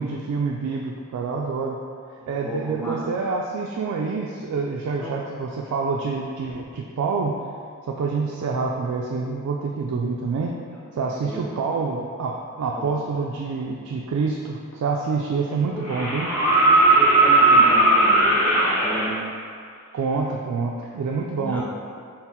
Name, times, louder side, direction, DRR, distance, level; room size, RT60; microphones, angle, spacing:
voice 1, 0.0-1.8 2.3-7.4 7.9-10.6 10.9-16.3 19.9-21.6, right 4 dB, 85° right, 0 dB, 0.3 m, -27 dB
voice 2, 2.2-3.1 4.9-5.1 10.7-10.8 11.2-11.6 12.7-13.0 15.6-15.8 16.3-19.2 21.4-21.6, right 1 dB, 10° left, -5 dB, 0.5 m, -34 dB
sound 1, 14.7-14.8 15.8-19.1 20.8-20.9, right 2 dB, 90° left, 0.9 m, -17 dB
3.7 x 2.0 x 4.3 m, 2.3 s
head